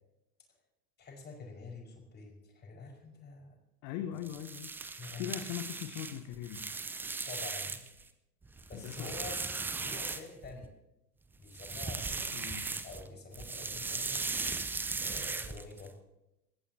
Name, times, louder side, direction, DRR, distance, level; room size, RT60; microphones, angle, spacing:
voice 1, 1.0-3.6 5.0-5.5 7.2-7.8 8.7-9.4 9.8-10.7 11.4-12.3 12.8-14.3 14.9-16.0, left 4 dB, 20° left, 1 dB, 5.5 m, -47 dB
voice 2, 3.8-6.8 8.7-9.1 12.3-12.8, left 11 dB, 40° left, 7 dB, 1.3 m, -41 dB
sound 1, 4.2-8.0 8.4-10.7 11.4-13.1 13.3-15.9, right 4 dB, 5° right, 0.4 m, -38 dB
28.0 x 14.5 x 2.9 m, 0.89 s
figure-of-eight pair, 90°, 49 cm